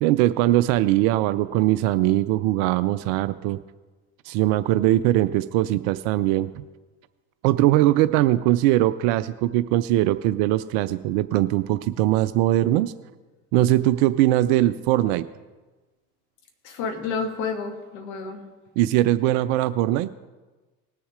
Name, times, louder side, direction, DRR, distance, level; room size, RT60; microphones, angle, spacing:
voice 1, 0.0-3.6 4.3-6.6 7.4-12.9 13.5-15.2 18.8-20.1, right 15 dB, 40° right, 13 dB, 0.4 m, -21 dB
voice 2, 16.6-18.4, left 4 dB, 55° left, 3 dB, 2.0 m, -30 dB
19.5 x 6.9 x 3.7 m, 1.2 s
figure-of-eight pair, 70°, 45 cm